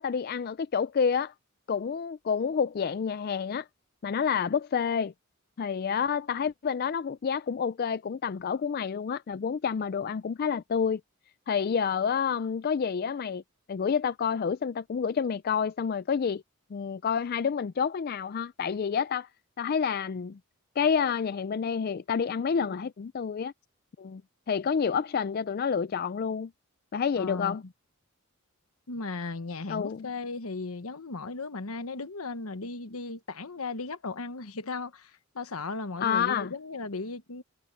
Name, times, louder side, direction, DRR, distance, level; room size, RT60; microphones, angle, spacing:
voice 1, 0.0-1.3 1.7-3.7 4.0-5.1 5.6-11.0 11.5-13.4 13.7-16.4 16.7-19.3 19.6-20.4 20.8-23.5 24.0-24.2 24.5-26.5 26.9-27.6 29.7-30.1 36.0-36.5, left 6 dB, 45° left, 0.3 m, -28 dB
voice 2, 27.2-27.7 28.9-37.4, left 3 dB, 80° left, 1.2 m, -36 dB
head